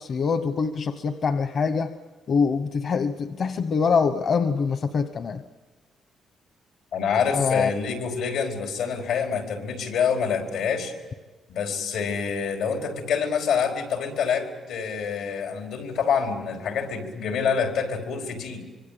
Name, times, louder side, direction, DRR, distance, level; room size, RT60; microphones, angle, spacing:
voice 1, 0.0-1.9 2.3-5.4 7.3-7.7, left 5 dB, 45° left, 9 dB, 1.0 m, -24 dB
voice 2, 6.9-10.9 11.5-18.6, left 6 dB, 85° left, 3 dB, 4.7 m, -26 dB
25.0 x 24.5 x 8.6 m, 1.3 s
cardioid pair, 145°, 0 cm